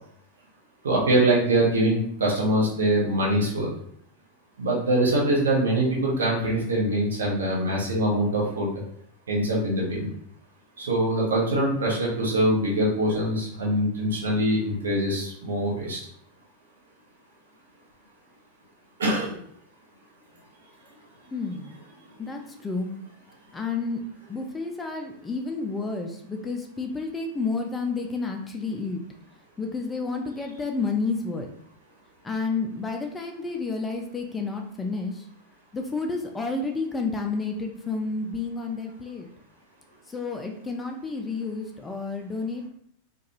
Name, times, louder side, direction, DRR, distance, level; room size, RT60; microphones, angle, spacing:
voice 1, 0.8-3.7 4.6-8.7 9.3-10.1 10.8-16.0 19.0-19.3 22.2-22.3, right 1 dB, 65° right, -4 dB, 0.9 m, -23 dB
voice 2, 21.3-21.8 22.2-22.9 23.5-24.0 24.3-29.0 29.6-31.5 32.2-35.1 35.7-39.3 40.1-42.7, left 4 dB, 10° left, 2 dB, 0.3 m, -30 dB
2.4 x 2.3 x 2.9 m, 0.67 s
figure-of-eight pair, 90°, 0 cm